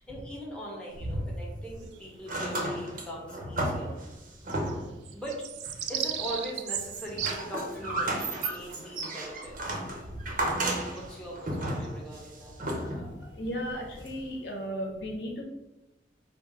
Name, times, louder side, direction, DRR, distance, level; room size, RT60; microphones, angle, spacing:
voice 1, 0.0-3.9 5.1-5.5 5.9-9.8 10.9-12.6, right 1 dB, 5° left, -5 dB, 1.0 m, -41 dB
sound 1, 0.9-1.9 2.2-5.1 5.6-6.4 6.8-13.2 14.1-14.2, right 1 dB, 50° right, 0.8 m, -33 dB
sound 2, 1.8-2.9 3.3-3.4 3.6-14.3, right 9 dB, 70° right, 0.4 m, -39 dB
voice 2, 12.8-15.4, equal, 70° left, 0 dB, 1.0 m, -36 dB
5.1 x 2.1 x 4.8 m, 0.97 s
head